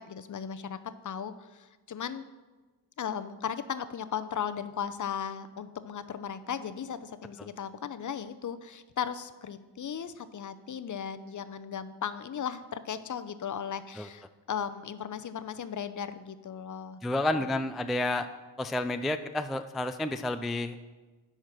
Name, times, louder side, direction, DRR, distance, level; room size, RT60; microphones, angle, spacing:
voice 1, 0.1-0.8 1.0-2.2 3.0-17.0 17.4-17.5, left 8 dB, 40° left, 12 dB, 0.7 m, -36 dB
voice 2, 17.0-18.3 18.6-20.8, left 1 dB, ahead, 9 dB, 0.4 m, -30 dB
10.5 x 4.5 x 6.0 m, 1.3 s
supercardioid pair, 60°, 47 cm